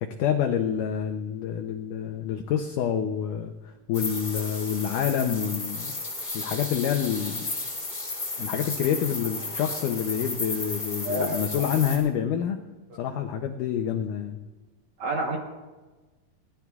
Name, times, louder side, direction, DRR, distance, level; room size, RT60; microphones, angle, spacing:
voice 1, 0.0-5.9 6.3-7.5 8.4-12.6 13.0-14.4, left 9 dB, 90° left, 5 dB, 1.8 m, -27 dB
sound 1, 3.9-12.0, left 2 dB, 20° left, 3.3 m, -33 dB
voice 2, 11.0-11.6 15.0-15.4, right 1 dB, 60° right, 0 dB, 2.0 m, -29 dB
23.0 x 18.0 x 2.4 m, 1.2 s
omnidirectional pair, 4.6 m